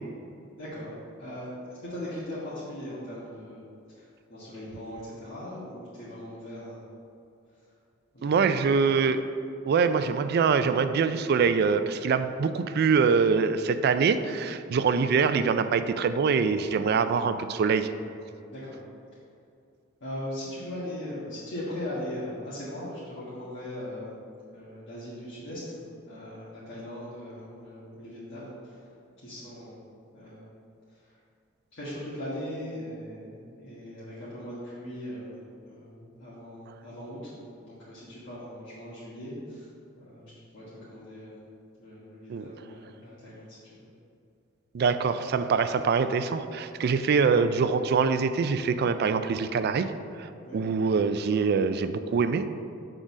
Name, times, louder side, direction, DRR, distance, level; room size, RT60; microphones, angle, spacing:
voice 1, 0.6-0.9 1.2-3.6 3.9-6.8 8.1-8.3 8.7-8.8 18.5-18.8 20.0-24.2 24.5-28.9 29.2-29.8 30.1-30.5 30.9-31.2 31.7-39.7 40.0-41.4 41.8-43.9 50.4-50.6, left 1 dB, 65° left, -10 dB, 1.6 m, -39 dB
voice 2, 8.2-9.2 9.7-17.9 42.3-42.4 44.7-49.9 50.2-52.5, right 5 dB, 50° right, 11 dB, 0.3 m, -24 dB
6.1 x 3.9 x 6.1 m, 2.6 s
head